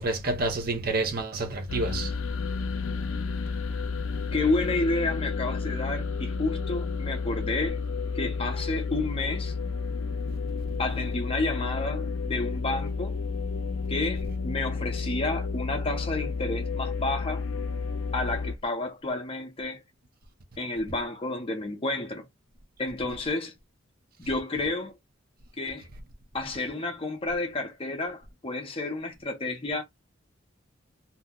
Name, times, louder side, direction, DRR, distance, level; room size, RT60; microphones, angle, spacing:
voice 1, 0.0-2.1, right 2 dB, 45° right, 0.7 m, -28 dB
sound 1, 1.7-18.5, left 4 dB, 85° left, 0.5 m, -31 dB
voice 2, 4.3-7.8 8.1-9.5 10.8-13.2 13.9-17.4 18.1-19.8 20.6-22.3 22.8-23.5 24.2-24.9 25.6-25.9 26.3-29.8, left 2 dB, 30° left, 0.6 m, -30 dB
2.7 x 2.1 x 3.5 m
head